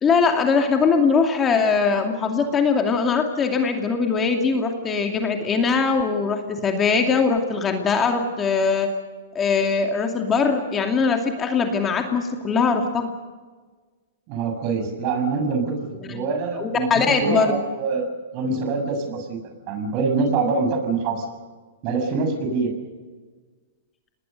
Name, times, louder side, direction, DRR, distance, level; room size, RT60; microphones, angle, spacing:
voice 1, 0.0-8.9 9.3-13.1 16.1-16.2 16.5-17.6, left 5 dB, 20° left, 4 dB, 2.5 m, -21 dB
voice 2, 14.3-15.7 16.0-18.1 18.3-19.4 19.7-21.2 21.8-22.7, right 4 dB, 40° right, 5 dB, 6.6 m, -24 dB
27.0 x 20.0 x 6.7 m, 1.4 s
hypercardioid pair, 135°, 0 cm